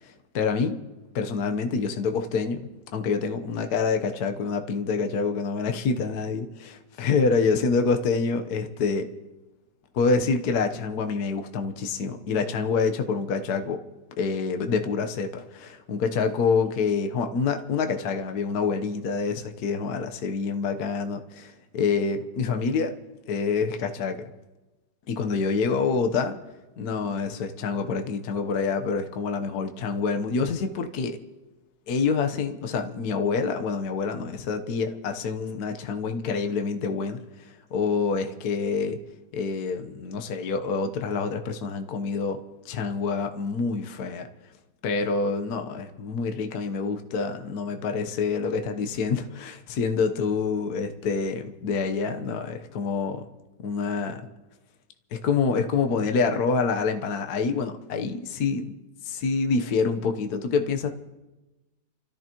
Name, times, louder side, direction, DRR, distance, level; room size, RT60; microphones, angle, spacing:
voice 1, 0.3-0.8 1.1-2.6 2.9-9.1 9.9-13.8 14.2-22.9 23.3-24.3 25.1-26.4 26.8-31.2 31.9-37.2 37.7-39.0 39.3-44.3 44.8-53.2 53.6-54.2 55.1-58.7 59.0-60.9, left 5 dB, 55° left, 6 dB, 1.4 m, -27 dB
30.0 x 14.0 x 3.0 m, 1.1 s
omnidirectional pair, 2.2 m